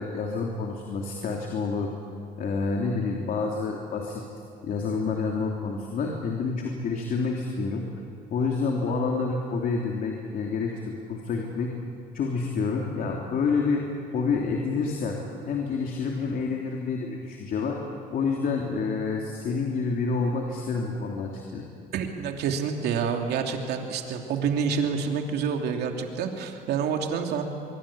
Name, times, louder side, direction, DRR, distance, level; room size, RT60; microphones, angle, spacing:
voice 1, 0.0-1.9 2.4-4.2 4.6-7.9 8.3-10.7 11.1-11.7 12.1-13.8 14.1-15.2 15.5-17.8 18.1-21.6, left 4 dB, 60° left, 0 dB, 3.2 m, -28 dB
voice 2, 21.9-27.4, right 6 dB, 75° right, 3 dB, 2.9 m, -28 dB
24.0 x 23.5 x 8.7 m, 2.7 s
cardioid pair, 110°, 17 cm